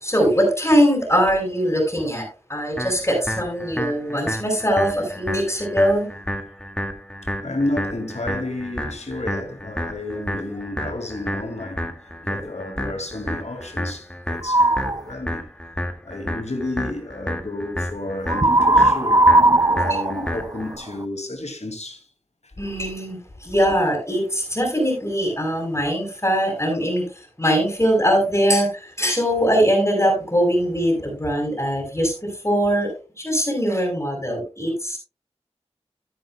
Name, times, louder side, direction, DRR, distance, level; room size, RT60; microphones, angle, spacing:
voice 1, 0.0-6.1 22.6-27.0 27.4-28.7 29.0-32.1 32.4-32.9 33.2-35.0, equal, 25° left, 5.0 m, -21 dB
sound 1, 2.8-20.8, equal, 10° left, 1.9 m, -31 dB
voice 2, 7.2-15.4 16.0-19.3 19.7-22.0, left 2 dB, 80° left, 2.4 m, -31 dB
sound 2, 14.4-15.0 18.3-21.0, right 1 dB, 35° right, 0.5 m, -17 dB
14.0 x 9.4 x 2.2 m
wide cardioid pair, 50°, 11 cm